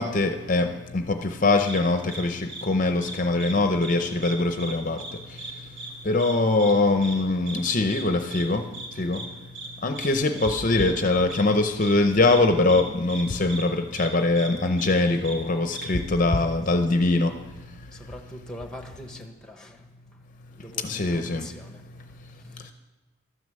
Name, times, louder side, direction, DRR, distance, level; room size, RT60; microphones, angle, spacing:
voice 1, 0.0-18.1 20.8-21.5 22.0-22.7, left 2 dB, 40° left, 0.6 m, -23 dB
sound 1, 1.7-1.8 2.1-2.2 2.5-2.6 3.0-3.5 3.8-4.7 5.0-5.1 5.4-5.5 5.8-5.9 6.2-6.3 6.6-6.7 7.0-7.1 7.5-7.6 7.9-8.0 8.3-8.4 8.7-8.9 9.1-9.3 9.5-9.7 9.9-10.1 10.4-10.5 10.8-10.9 11.3-11.4 11.8-11.9 12.3-12.4 12.7-12.8 13.1-13.2 13.5-13.6 14.0-14.1 14.4-14.5 14.8-14.9 15.2-15.4 15.7-15.8, right 2 dB, 60° right, 2.5 m, -37 dB
voice 2, 17.9-19.8 20.1-20.2 20.6-22.0 22.3-22.7, left 1 dB, 5° left, 0.9 m, -43 dB
12.5 x 9.6 x 7.5 m
head